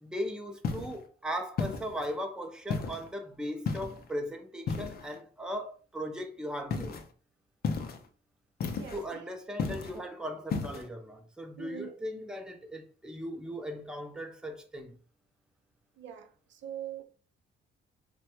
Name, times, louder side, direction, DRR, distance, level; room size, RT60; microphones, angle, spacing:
voice 1, 0.0-7.0 8.9-15.0, equal, 5° right, 0.5 m, -38 dB
sound 1, 0.6-1.0 1.6-2.1 2.7-3.1 3.7-4.1 4.7-5.2 6.7-7.1 7.6-8.1 8.6-9.1 9.6-10.0 10.5-10.9, left 5 dB, 50° left, 0.5 m, -34 dB
voice 2, 8.7-9.2 9.6-9.8 11.6-12.2 16.0-17.0, right 10 dB, 65° right, 0.5 m, -44 dB
3.1 x 2.2 x 2.9 m
cardioid pair, 90°, 20 cm